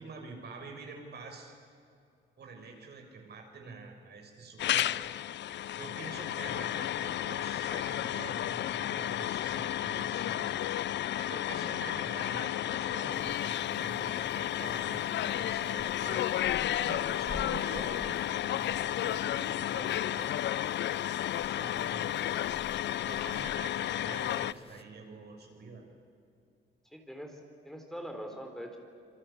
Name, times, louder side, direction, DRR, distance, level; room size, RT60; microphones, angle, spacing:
voice 1, 0.0-1.5 2.4-5.1 5.8-10.6 11.2-16.3 16.8-20.4 21.3-22.6 23.0-25.8, right 4 dB, 55° right, 3 dB, 6.5 m, -46 dB
sound 1, 4.6-24.5, left 12 dB, 65° left, 0.5 m, -32 dB
sound 2, 13.1-24.8, left 3 dB, 30° left, 1.6 m, -51 dB
voice 2, 26.9-27.4 27.6-28.8, equal, ahead, 3 dB, 4.0 m, -42 dB
27.0 x 23.5 x 8.6 m, 2.5 s
cardioid pair, 90°, 20 cm